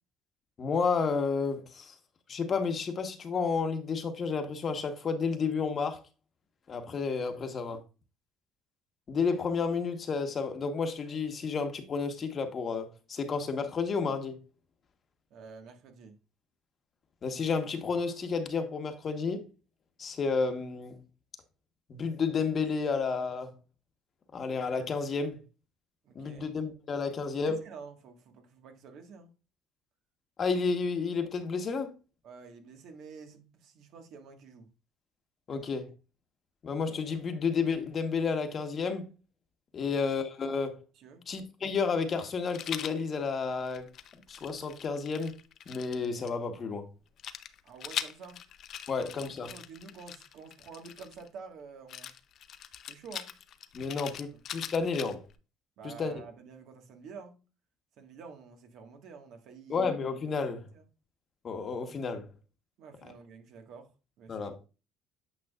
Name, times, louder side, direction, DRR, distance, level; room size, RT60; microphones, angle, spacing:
voice 1, 0.6-1.9 2.3-6.0 6.7-7.8 9.1-14.4 17.2-19.5 20.0-21.0 21.9-23.6 24.3-25.4 26.1-27.6 30.4-31.9 35.5-35.9 36.6-39.1 39.7-40.8 41.3-43.9 44.3-45.4 45.7-46.9 48.9-49.5 53.7-54.3 54.5-55.2 55.8-56.2 59.7-60.7 61.4-62.3 64.3-64.6, left 5 dB, 40° left, 1.2 m, -31 dB
voice 2, 15.3-16.2 26.0-26.5 27.4-29.3 32.2-34.7 35.5-35.7 39.8-39.9 41.0-41.2 47.6-48.4 49.4-52.1 52.9-53.3 53.9-54.0 54.3-54.4 55.8-57.4 58.0-59.9 60.7-60.9 62.8-63.9 64.2-64.7, right 5 dB, 65° right, 1.6 m, -49 dB
Rattle, 42.5-43.0 43.6-46.3 47.2-51.3 51.9-55.3, left 10 dB, 55° left, 0.6 m, -42 dB
9.0 x 5.6 x 2.4 m
cardioid pair, 100°, 0 cm